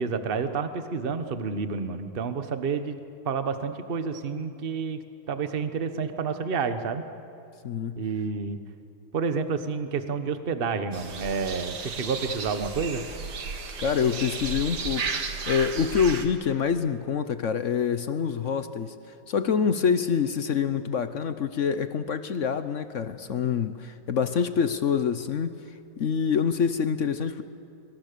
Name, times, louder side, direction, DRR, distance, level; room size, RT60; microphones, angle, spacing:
voice 1, 0.0-3.0 3.2-5.0 5.3-7.0 8.0-8.6 9.1-13.0, right 5 dB, 35° right, 9 dB, 1.2 m, -29 dB
voice 2, 7.6-8.0 13.8-18.9 19.3-25.5 26.0-27.4, left 7 dB, 60° left, 11 dB, 0.8 m, -26 dB
sound 1, 10.9-16.2, right 5 dB, 55° right, 2.1 m, -34 dB
25.5 x 24.5 x 6.9 m, 2.7 s
omnidirectional pair, 2.2 m